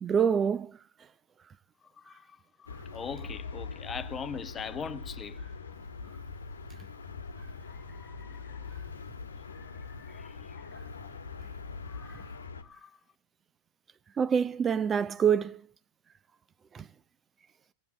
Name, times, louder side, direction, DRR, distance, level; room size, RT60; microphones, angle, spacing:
voice 1, 0.0-0.7 14.2-15.6 16.7-16.9, right 7 dB, 20° right, 0.6 m, -26 dB
voice 2, 2.0-5.4 7.6-8.7 9.5-10.7 11.8-12.3 12.6-13.0, left 6 dB, 20° left, 0.9 m, -42 dB
sound 1, 2.7-12.6, left 4 dB, 70° left, 1.3 m, -42 dB
17.5 x 8.4 x 7.7 m
figure-of-eight pair, 90°, 0 cm